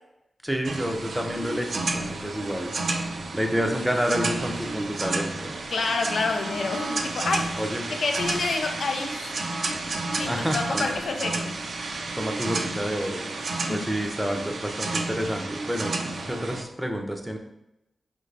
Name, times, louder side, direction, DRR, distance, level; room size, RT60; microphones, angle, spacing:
voice 1, 0.4-1.9 2.2-2.7 3.3-5.5 7.6-7.8 10.3-10.9 12.2-13.2 13.7-17.4, equal, 5° right, 3 dB, 0.6 m, -29 dB
sound 1, 0.6-16.6, right 3 dB, 70° right, 0.5 m, -31 dB
voice 2, 5.7-7.5 7.9-9.3 10.2-11.5 13.7-14.1, left 3 dB, 80° left, 4 dB, 0.6 m, -28 dB
5.0 x 2.6 x 3.2 m, 0.86 s
wide cardioid pair, 80°, 0 cm